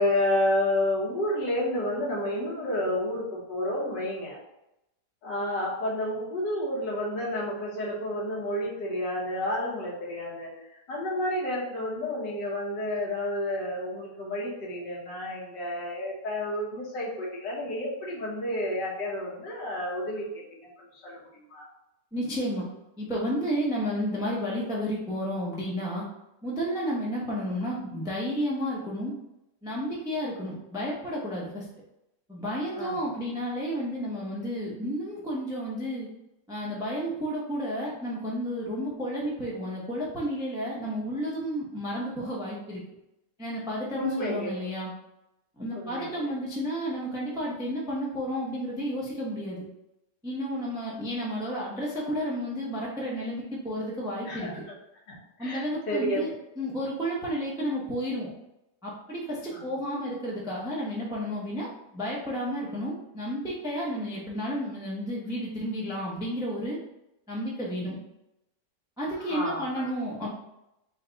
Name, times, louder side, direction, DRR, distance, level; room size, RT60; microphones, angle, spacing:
voice 1, 0.0-4.4 5.2-20.3 20.8-21.7 32.8-33.1 43.9-44.5 45.7-46.3 54.3-54.7 55.1-56.2 59.5-59.6 69.3-69.9, left 1 dB, 80° left, -5 dB, 1.8 m, -30 dB
voice 2, 22.1-22.6 23.0-26.0 26.4-29.1 29.6-31.7 32.3-36.1 36.5-42.8 43.4-44.9 45.6-49.6 50.2-54.5 55.4-58.3 58.8-66.8 67.3-68.0 69.0-70.3, equal, 5° right, -5 dB, 0.4 m, -32 dB
4.1 x 2.2 x 3.8 m, 0.87 s
omnidirectional pair, 1.8 m